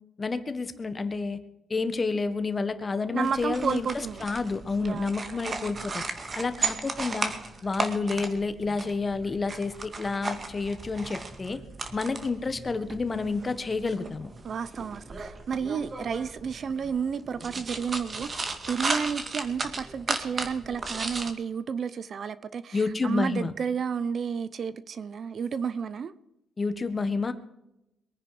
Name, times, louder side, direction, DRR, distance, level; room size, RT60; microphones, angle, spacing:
voice 1, 0.2-1.4 1.7-3.9 4.2-6.0 6.3-7.3 7.6-11.6 11.9-14.3 22.7-23.5 26.6-27.3, left 4 dB, 30° left, 1.4 m, -29 dB
voice 2, 3.1-4.2 4.8-5.2 14.4-26.1, right 6 dB, 50° right, 0.7 m, -31 dB
sound 1, 3.2-21.3, right 3 dB, 35° right, 2.1 m, -36 dB
23.0 x 9.9 x 4.9 m
cardioid pair, 90°, 0 cm